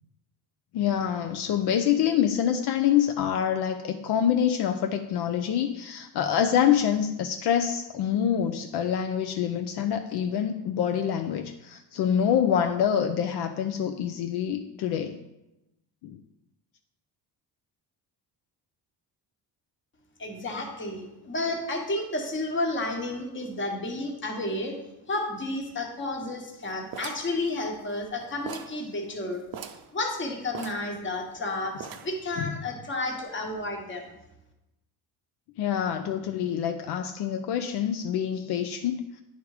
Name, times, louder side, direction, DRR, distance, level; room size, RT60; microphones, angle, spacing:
voice 1, 0.7-15.2 16.0-16.2 32.4-32.5 35.6-39.2, left 9 dB, 70° left, 6 dB, 0.5 m, -26 dB
voice 2, 20.2-24.8 25.1-34.1, left 2 dB, 30° left, 2 dB, 1.2 m, -31 dB
sound 1, 26.9-28.1 28.5-28.8 29.1-29.2 29.5-29.9 30.5-31.4 31.8-32.3, right 7 dB, 60° right, 0.6 m, -40 dB
9.5 x 3.6 x 4.8 m, 0.93 s
cardioid pair, 150°, 41 cm